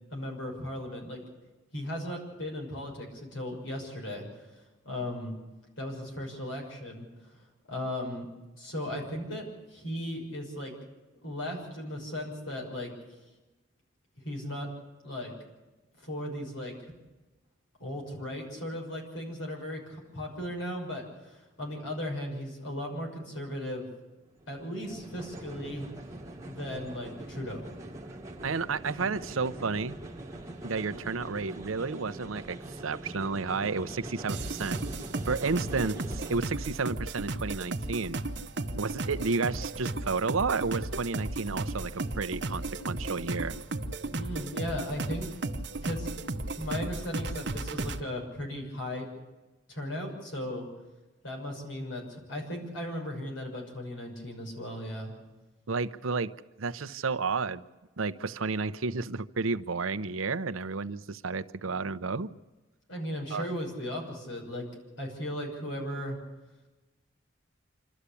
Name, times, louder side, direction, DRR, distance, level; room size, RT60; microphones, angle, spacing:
voice 1, 0.1-1.2 1.7-4.5 4.8-5.3 5.8-7.1 7.7-8.3 8.6-10.7 11.2-12.9 14.2-14.7 15.0-15.3 16.0-16.9 17.8-23.9 24.5-25.9 26.5-27.7 44.1-45.3 45.8-46.1 46.6-49.1 49.7-50.7 51.2-55.1 62.9-64.7 65.0-66.2, left 1 dB, 70° left, 1 dB, 6.4 m, -36 dB
sound 1, 24.3-36.4, right 1 dB, 15° right, 1.6 m, -43 dB
voice 2, 28.4-30.0 30.6-32.6 32.8-34.8 35.2-38.2 38.8-43.5 55.7-57.6 58.0-62.3 63.3-63.5, right 4 dB, 90° right, 12 dB, 0.8 m, -31 dB
sound 2, 34.3-48.0, right 2 dB, 55° right, 1.0 m, -35 dB
27.0 x 13.0 x 8.4 m, 1.1 s
head